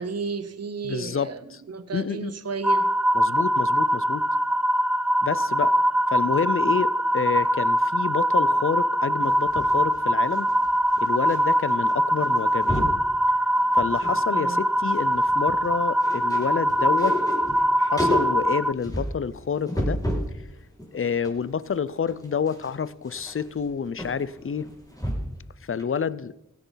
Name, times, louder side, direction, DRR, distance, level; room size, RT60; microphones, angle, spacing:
voice 1, 0.0-1.4 1.7-2.9 14.3-14.6, right 4 dB, 55° right, 12 dB, 0.9 m, -32 dB
voice 2, 0.8-1.6 1.9-2.3 3.1-4.2 5.2-5.7 6.1-10.5 11.0-12.9 13.7-17.2 17.7-20.0 20.9-24.7 25.7-26.3, left 6 dB, 45° left, 18 dB, 0.6 m, -28 dB
sound 1, 2.6-18.7, equal, 5° right, 0.4 m, -22 dB
sound 2, 9.2-11.4 11.7-11.9 12.2-13.0 13.6-14.2 14.5-20.4 20.8-25.5 25.8-25.9, equal, 10° left, 4.9 m, -32 dB
16.5 x 11.0 x 4.0 m, 0.86 s
cardioid pair, 50°, 30 cm